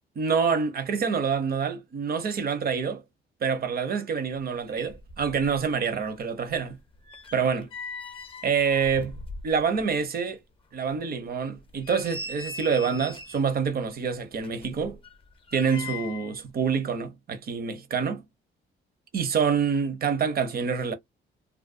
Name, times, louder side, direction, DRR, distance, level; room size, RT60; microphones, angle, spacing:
voice 1, 0.2-3.0 3.4-6.8 7.3-7.7 8.4-9.2 9.4-10.4 10.7-15.0 15.5-18.2 19.1-20.9, right 6 dB, 50° right, 0.7 m, -26 dB
sound 1, 4.4-4.5 4.7-5.7 5.9-9.9 10.3-10.4 10.9-11.0 11.6-13.5 14.4-16.4 16.6-16.8, left 3 dB, 25° left, 0.6 m, -41 dB
2.5 x 2.1 x 2.4 m
cardioid pair, 90°, 20 cm